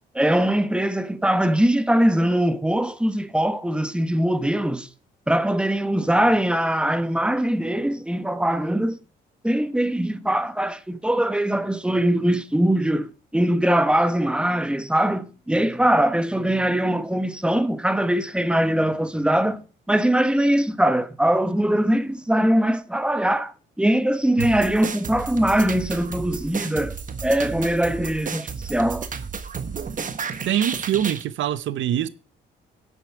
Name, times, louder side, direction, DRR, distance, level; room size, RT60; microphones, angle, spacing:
voice 1, 0.1-4.9 5.3-9.0 9.4-29.1, right 1 dB, 5° right, 1.1 m, -22 dB
sound 1, 24.4-31.2, right 6 dB, 40° right, 1.3 m, -32 dB
voice 2, 30.5-32.1, right 11 dB, 75° right, 0.8 m, -24 dB
11.0 x 8.3 x 4.6 m
cardioid pair, 90°, 20 cm